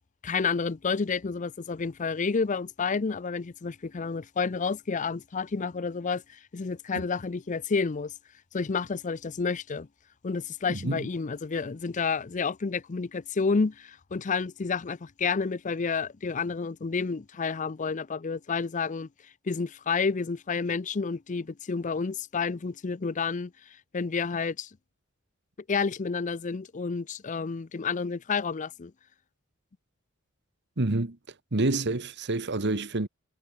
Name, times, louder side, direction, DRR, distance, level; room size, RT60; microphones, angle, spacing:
voice 1, 0.2-8.1 8.5-9.9 10.2-19.1 19.5-24.7 25.7-28.9, left 5 dB, 35° left, 0.5 m, -30 dB
voice 2, 10.7-11.1 30.8-31.2 31.5-33.1, right 2 dB, 55° right, 1.4 m, -28 dB
head